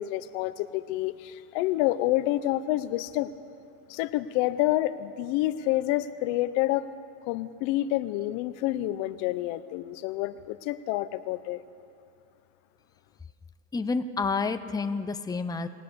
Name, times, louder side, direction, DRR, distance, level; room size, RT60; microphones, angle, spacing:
voice 1, 0.0-3.3 3.9-6.9 7.3-11.6, left 15 dB, 85° left, 13 dB, 1.0 m, -28 dB
voice 2, 13.7-15.7, left 4 dB, 10° left, 9 dB, 0.7 m, -29 dB
28.0 x 18.5 x 7.0 m, 2.4 s
cardioid pair, 135°, 38 cm